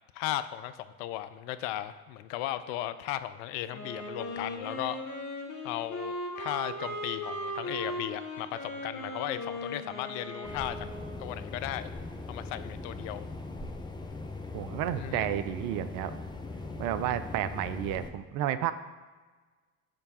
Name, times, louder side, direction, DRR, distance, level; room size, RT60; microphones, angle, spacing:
voice 1, 0.1-5.0 5.6-10.9 11.2-11.9 12.3-13.2 15.0-15.2, left 13 dB, 65° left, 13 dB, 0.5 m, -36 dB
Wind instrument woodwind instrument, 3.7-11.3, left 1 dB, 45° left, 1.7 m, -38 dB
sound 1, 10.4-18.1, left 3 dB, 10° left, 0.7 m, -40 dB
voice 2, 14.5-16.1 16.8-18.7, right 11 dB, 55° right, 13 dB, 0.6 m, -31 dB
6.8 x 3.4 x 5.5 m, 1.4 s
hypercardioid pair, 60°, 41 cm